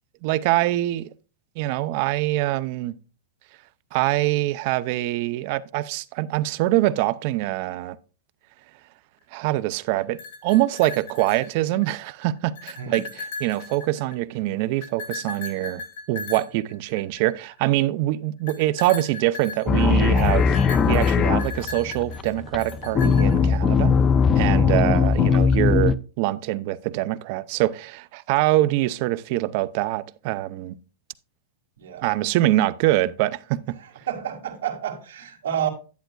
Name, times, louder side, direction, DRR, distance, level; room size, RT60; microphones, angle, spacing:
voice 1, 0.2-1.1 1.6-2.9 3.9-8.0 9.3-13.0 13.4-15.8 16.1-23.9 24.4-30.8 32.0-33.8, right 16 dB, 45° right, 0.5 m, -24 dB
sound 1, 10.0-12.0 12.4-14.3 14.8-17.5 18.5-23.6, left 4 dB, 75° left, 2.4 m, -37 dB
voice 2, 12.8-13.1 31.8-32.1 33.8-35.7, right 9 dB, 90° right, 2.1 m, -30 dB
sound 2, 19.7-25.9, left 6 dB, 20° left, 0.4 m, -20 dB
10.5 x 8.9 x 2.3 m
supercardioid pair, 155°, 0 cm